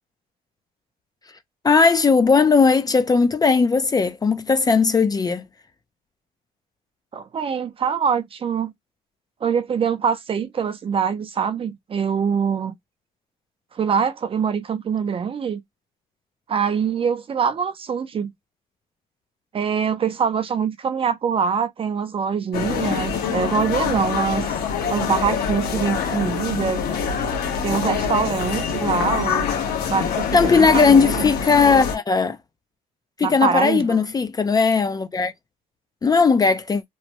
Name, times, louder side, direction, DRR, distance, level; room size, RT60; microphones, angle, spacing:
voice 1, 1.6-5.5 30.3-32.4 33.2-35.3 36.0-36.8, left 5 dB, 25° left, 0.4 m, -17 dB
voice 2, 7.1-8.7 9.4-12.7 13.7-15.6 16.5-18.3 19.5-24.6 24.9-26.8 27.6-29.5 29.9-31.1 33.2-34.0, right 6 dB, 35° right, 0.5 m, -24 dB
sound 1, 22.5-32.0, left 7 dB, 70° left, 1.1 m, -25 dB
3.0 x 2.2 x 2.8 m
cardioid pair, 110°, 17 cm